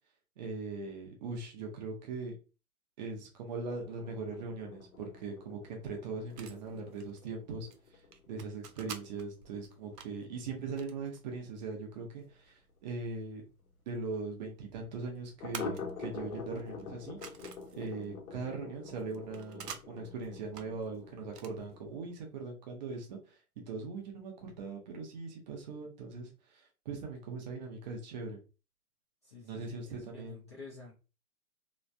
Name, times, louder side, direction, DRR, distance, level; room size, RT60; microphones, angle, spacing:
voice 1, 0.4-2.3 3.0-7.7 8.3-13.4 13.9-17.2 17.7-23.4 23.7-28.4 29.4-30.4, right 4 dB, 30° right, 1 dB, 0.8 m, -40 dB
sound 1, 3.7-12.9 13.2-13.3 13.6-13.7 14.1-14.2 15.4-22.1, left 5 dB, 65° left, 0.9 m, -47 dB
Cassette Player and Tape Fiddling, 6.3-21.9, right 7 dB, 80° right, 0.6 m, -51 dB
voice 2, 29.2-30.9, left 3 dB, 20° left, -7 dB, 0.4 m, -50 dB
3.1 x 2.1 x 2.5 m, 0.32 s
hypercardioid pair, 135°, 46 cm